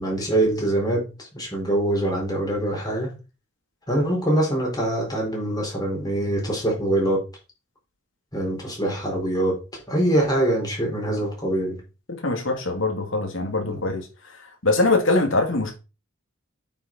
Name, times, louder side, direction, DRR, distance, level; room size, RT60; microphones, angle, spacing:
voice 1, 0.0-3.1 3.9-7.3 8.3-11.8 13.6-13.8, right 1 dB, 20° left, 4.5 m, -24 dB
voice 2, 12.1-14.1 14.6-15.7, left 2 dB, 70° left, 2.7 m, -22 dB
8.9 x 6.6 x 4.8 m
head